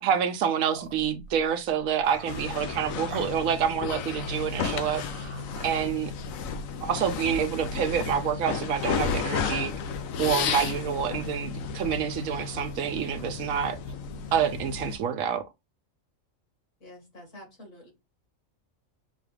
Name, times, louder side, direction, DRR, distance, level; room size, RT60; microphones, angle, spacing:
voice 1, 0.0-5.3 5.6-6.1 6.8-9.7 10.2-13.8 14.3-15.4, right 8 dB, 85° right, 1.1 m, -27 dB
sound 1, 0.7-6.4, right 3 dB, 35° right, 0.5 m, -46 dB
sound 2, 2.3-15.0, left 6 dB, 90° left, 1.1 m, -33 dB
voice 2, 16.8-17.9, left 1 dB, 65° left, 2.5 m, -48 dB
5.7 x 2.3 x 3.2 m
omnidirectional pair, 1.4 m